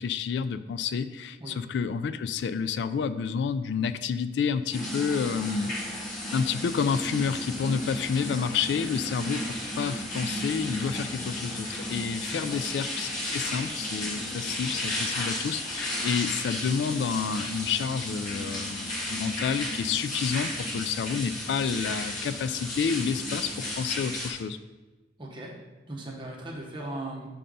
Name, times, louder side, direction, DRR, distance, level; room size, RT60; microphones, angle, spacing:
voice 1, 0.0-5.7 6.3-24.6, left 6 dB, 75° left, 12 dB, 0.3 m, -29 dB
sound 1, 4.7-24.3, left 1 dB, 45° left, 1.9 m, -34 dB
voice 2, 12.3-12.6 25.2-25.5 25.9-27.3, right 1 dB, 30° right, -2 dB, 1.2 m, -38 dB
5.6 x 3.8 x 5.3 m, 1.2 s
head